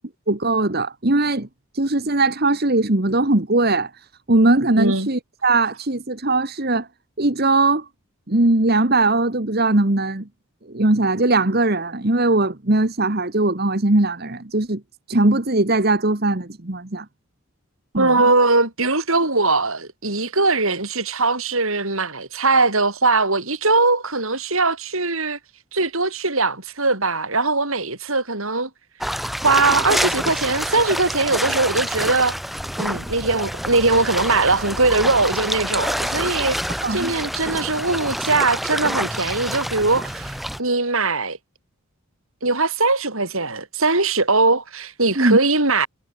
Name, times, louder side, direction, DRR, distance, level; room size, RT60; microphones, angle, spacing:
voice 1, 0.3-1.5 1.7-6.9 7.2-7.9 8.3-10.3 10.7-14.8 15.1-17.1 17.9-18.2 36.8-37.1 45.1-45.4, right 2 dB, 45° right, 1.5 m, -20 dB
voice 2, 4.8-5.1 18.0-25.4 25.7-28.7 29.1-32.4 32.8-41.4 42.4-45.9, right 3 dB, 70° right, 7.7 m, -20 dB
sound 1, 29.0-40.6, equal, ahead, 3.3 m, -27 dB
head